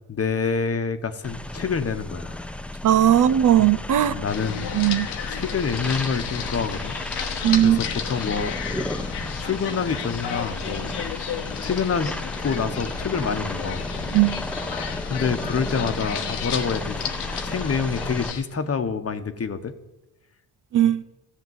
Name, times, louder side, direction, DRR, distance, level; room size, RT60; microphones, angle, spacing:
voice 1, 0.1-2.5 3.6-3.8 4.1-4.7 5.3-7.0 7.3-8.9 9.4-10.9 11.2-12.2 12.4-13.9 15.1-17.0 17.4-19.7, left 5 dB, 35° left, 8 dB, 1.1 m, -27 dB
sound 1, 1.2-18.3, left 1 dB, 5° left, 0.5 m, -33 dB
voice 2, 2.8-4.1 4.7-5.1 7.4-7.8 14.1-14.4 20.7-21.0, right 12 dB, 50° right, 14 dB, 0.6 m, -18 dB
sound 2, 4.3-18.4, left 8 dB, 85° left, 1.1 m, -33 dB
14.0 x 6.5 x 8.0 m, 1.0 s
cardioid pair, 75°, 40 cm